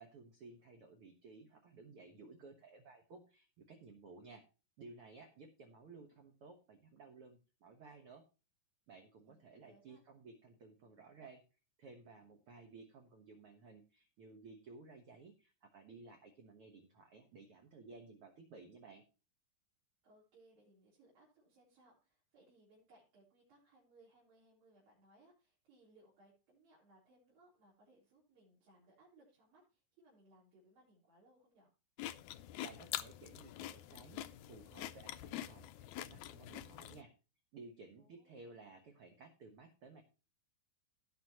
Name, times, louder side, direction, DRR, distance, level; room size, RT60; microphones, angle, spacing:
voice 1, 0.0-4.4 4.8-8.2 8.9-11.4 11.8-19.0 32.6-37.1 37.5-40.0, right 3 dB, 55° right, 4 dB, 1.8 m, -56 dB
voice 2, 9.2-10.0 20.0-31.7 38.0-38.5, right 2 dB, 85° right, -7 dB, 5.6 m, -67 dB
sound 1, 32.0-37.0, left 13 dB, 80° left, 1.8 m, -45 dB
18.0 x 6.0 x 3.0 m, 0.33 s
omnidirectional pair, 4.0 m